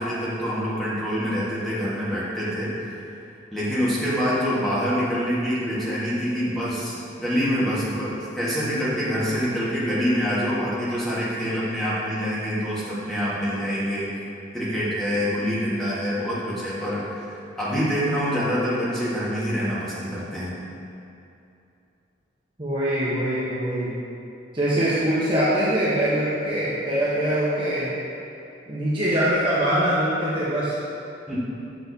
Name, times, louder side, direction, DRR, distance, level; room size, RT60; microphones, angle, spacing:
voice 1, 0.0-2.9 3.5-14.1 14.5-20.6 31.3-31.4, equal, ahead, -10 dB, 1.4 m, -26 dB
voice 2, 22.6-23.9 24.5-27.9 28.7-30.8, right 1 dB, 25° right, -9 dB, 0.8 m, -23 dB
6.7 x 6.2 x 2.7 m, 2.7 s
head